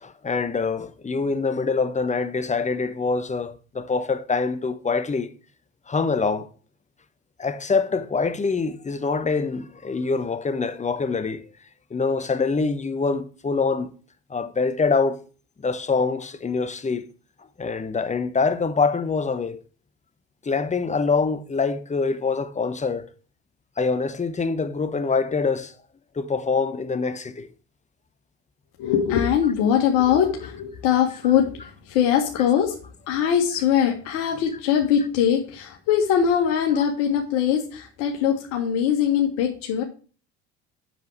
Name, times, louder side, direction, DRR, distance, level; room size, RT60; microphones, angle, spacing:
voice 1, 0.0-5.3 5.9-6.5 7.4-11.4 11.9-13.9 14.3-15.2 15.6-17.0 17.6-19.6 20.4-23.1 23.8-25.7 26.1-27.5, left 4 dB, 20° left, 1.2 m, -25 dB
voice 2, 28.8-32.8 33.1-39.8, left 9 dB, 65° left, 1.8 m, -22 dB
8.0 x 7.2 x 4.6 m
hypercardioid pair, 60°, 33 cm